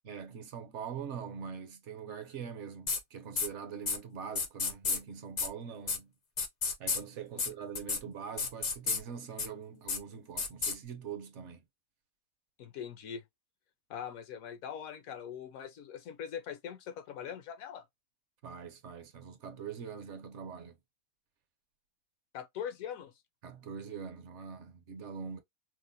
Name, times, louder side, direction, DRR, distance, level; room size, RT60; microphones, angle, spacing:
voice 1, 0.0-6.1 6.8-11.6 18.4-20.8 23.4-25.4, right 7 dB, 60° right, 0.9 m, -43 dB
sound 1, 2.9-3.0 3.4-3.5 3.9-4.0 4.4-5.0 5.4-5.5 5.9-6.0 6.4-7.0 7.4-7.5 7.7-8.0 8.4-9.0 9.4-9.5 9.9-10.0 10.4-10.7, left 5 dB, 55° left, 0.4 m, -31 dB
voice 2, 12.6-13.2 13.9-17.9 22.3-23.1, left 8 dB, 70° left, 0.9 m, -42 dB
4.5 x 2.1 x 2.6 m
omnidirectional pair, 1.5 m